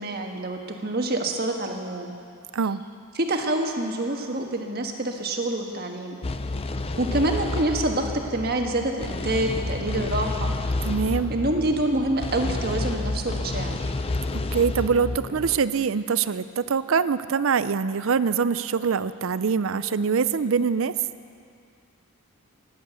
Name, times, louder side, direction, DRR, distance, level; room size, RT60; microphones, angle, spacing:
voice 1, 0.0-2.1 3.1-6.2 7.0-10.5 11.3-13.9, right 1 dB, 45° right, 3 dB, 1.4 m, -27 dB
sound 1, 6.2-15.6, left 2 dB, 25° left, 0.5 m, -30 dB
voice 2, 10.8-11.3 14.5-20.9, right 6 dB, 60° right, 15 dB, 0.5 m, -24 dB
14.5 x 11.0 x 8.2 m, 2.4 s
head